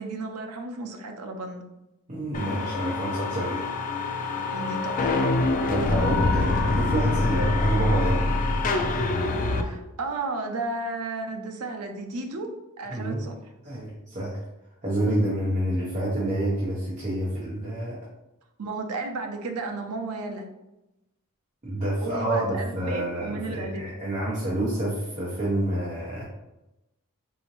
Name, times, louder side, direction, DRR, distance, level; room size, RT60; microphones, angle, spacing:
voice 1, 0.0-1.6 4.5-5.2 9.6-12.5 12.8-13.4 18.6-20.5 22.0-23.8, right 3 dB, 90° right, 4 dB, 0.6 m, -33 dB
voice 2, 2.1-3.7 5.7-8.3 12.9-13.2 13.6-14.4 14.8-18.0 21.6-26.2, right 1 dB, 35° right, -7 dB, 0.9 m, -28 dB
sound 1, 2.3-9.6, left 2 dB, 35° left, 0.3 m, -25 dB
4.1 x 2.7 x 3.0 m, 0.95 s
head